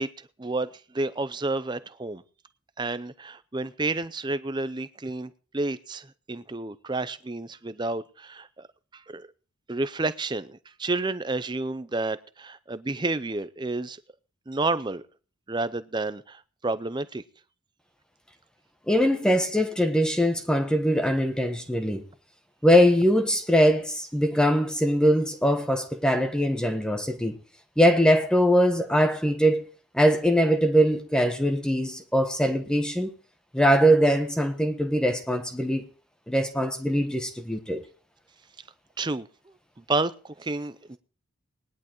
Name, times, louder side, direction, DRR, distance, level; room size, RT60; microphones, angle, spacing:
voice 1, 0.0-2.2 2.8-8.7 8.9-9.3 9.7-14.0 14.5-15.0 15.5-17.2 39.0-41.0, right 2 dB, 20° right, 0.5 m, -30 dB
voice 2, 18.9-22.0 22.6-27.4 27.8-29.6 29.9-33.1 33.5-35.8 36.3-37.8, equal, 5° left, 1.1 m, -22 dB
20.0 x 11.0 x 3.0 m
head